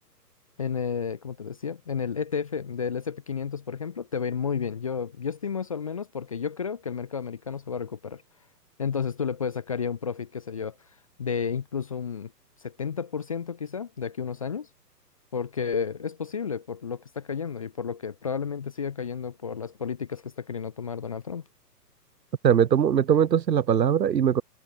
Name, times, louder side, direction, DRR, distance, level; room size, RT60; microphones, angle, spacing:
voice 1, 0.6-8.2 8.8-10.7 11.2-12.3 12.6-14.7 15.3-21.4, left 6 dB, 20° left, 0.5 m, -32 dB
voice 2, 22.4-24.4, right 8 dB, 85° right, 1.3 m, -21 dB
hypercardioid pair, 145°, 49 cm